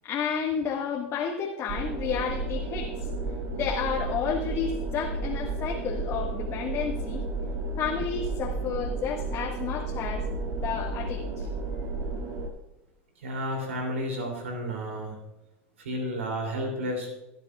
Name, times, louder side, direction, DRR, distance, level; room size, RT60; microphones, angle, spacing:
voice 1, 0.0-3.1 3.5-7.2 7.8-11.5, left 7 dB, 40° left, -1 dB, 1.6 m, -31 dB
sound 1, 1.7-12.5, right 3 dB, 55° right, 2.2 m, -32 dB
voice 2, 13.2-15.1 15.8-17.1, equal, 90° right, 2 dB, 2.9 m, -31 dB
17.0 x 11.0 x 2.4 m, 0.97 s
hypercardioid pair, 100°, 7 cm